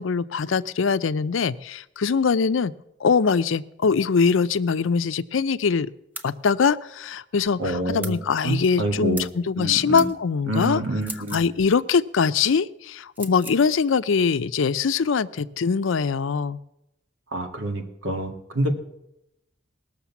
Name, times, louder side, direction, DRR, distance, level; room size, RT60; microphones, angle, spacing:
voice 1, 0.0-2.7 3.0-5.9 6.2-10.8 11.3-16.6, left 5 dB, 85° left, 15 dB, 0.5 m, -22 dB
sound 1, 6.2-6.3 8.0-8.2 9.2-9.4 10.0-10.1 11.0-11.5 13.2-13.6, right 1 dB, 10° right, 0.8 m, -37 dB
voice 2, 7.6-8.2 8.4-9.3 9.6-10.1 10.5-11.4 17.3-18.7, right 1 dB, 90° right, 5 dB, 1.9 m, -27 dB
19.5 x 6.6 x 7.1 m, 0.85 s
head